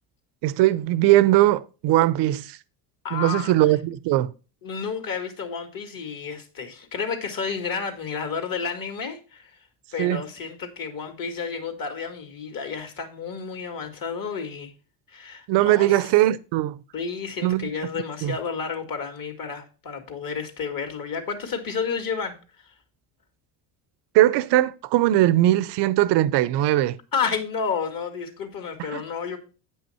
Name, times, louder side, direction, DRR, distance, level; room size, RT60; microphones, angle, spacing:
voice 1, 0.4-2.6 3.1-4.3 10.0-10.2 15.5-16.8 17.4-17.7 18.2-18.4 24.1-27.0 28.9-29.0, right 15 dB, 55° right, 0.7 m, -20 dB
voice 2, 3.0-3.7 4.6-9.5 9.9-14.7 15.1-16.1 16.9-22.4 27.1-29.4, left 5 dB, 40° left, 2.3 m, -31 dB
8.7 x 5.6 x 4.4 m
supercardioid pair, 90°, 50 cm